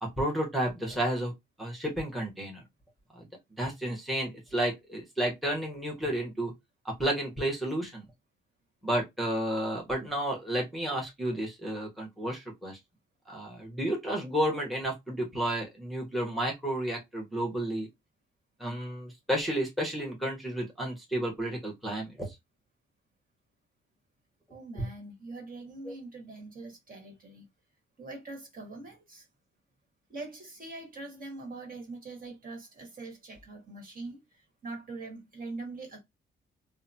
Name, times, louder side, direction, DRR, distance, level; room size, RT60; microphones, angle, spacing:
voice 1, 0.0-1.3 1.6-2.6 3.1-3.3 3.6-6.5 6.8-8.0 8.8-12.8 13.3-17.9 18.6-22.4 24.7-24.9 25.8-25.9, right 1 dB, ahead, 1.0 m, -31 dB
voice 2, 24.5-27.4 28.0-29.3 30.1-36.0, right 3 dB, 45° right, 1.5 m, -43 dB
2.8 x 2.2 x 2.7 m
cardioid pair, 90°, 20 cm